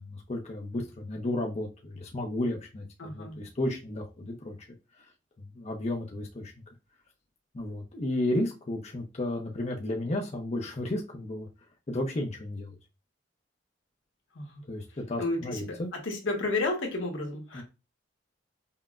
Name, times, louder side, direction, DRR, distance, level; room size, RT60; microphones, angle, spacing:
voice 1, 0.0-4.6 5.0-5.1 5.4-6.5 7.5-11.5 11.9-12.8 14.7-15.9 17.5-17.6, left 1 dB, 35° left, 1 dB, 0.6 m, -33 dB
voice 2, 3.0-3.4 14.3-14.6 15.2-15.8 16.0-17.6, left 2 dB, 85° left, 1 dB, 1.3 m, -31 dB
5.5 x 2.1 x 2.4 m, 0.28 s
head